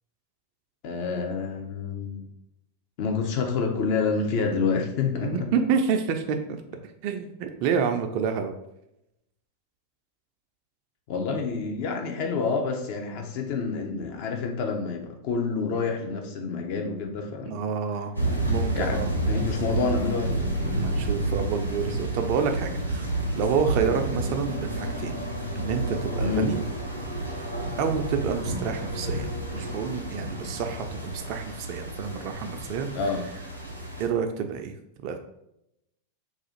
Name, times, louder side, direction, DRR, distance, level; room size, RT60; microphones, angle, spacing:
voice 1, 0.8-2.3 3.0-5.5 11.1-17.6 18.7-19.0 19.3-20.4 23.8-24.0 26.2-26.5 32.9-33.2, left 5 dB, 45° left, 3 dB, 0.6 m, -28 dB
voice 2, 5.2-6.6 7.0-8.5 17.4-18.1 18.5-19.1 20.7-23.1 23.4-25.2 25.6-26.6 27.8-32.9 34.0-34.7 35.0-35.2, right 6 dB, 45° right, 6 dB, 0.4 m, -28 dB
sound 1, 18.2-34.1, right 1 dB, 90° right, 0.6 m, -30 dB
2.5 x 2.4 x 4.1 m, 0.84 s
figure-of-eight pair, 90°, 0 cm